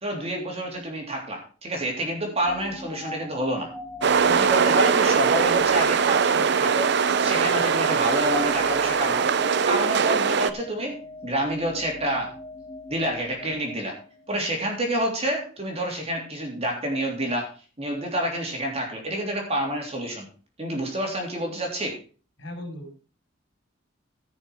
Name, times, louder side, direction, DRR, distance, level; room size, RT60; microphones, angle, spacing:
voice 1, 0.0-3.7 4.2-6.9 7.2-9.3 9.6-12.3 12.9-14.0 14.3-17.5 17.8-20.3 20.6-22.0, right 1 dB, 30° right, 1 dB, 3.3 m, -28 dB
sound 1, 2.5-14.6, left 2 dB, 10° left, 1.4 m, -41 dB
sound 2, 4.0-10.5, right 6 dB, 60° right, 0.6 m, -21 dB
voice 2, 22.4-23.0, left 1 dB, 70° left, 4 dB, 4.7 m, -37 dB
15.5 x 6.4 x 4.8 m, 0.38 s
head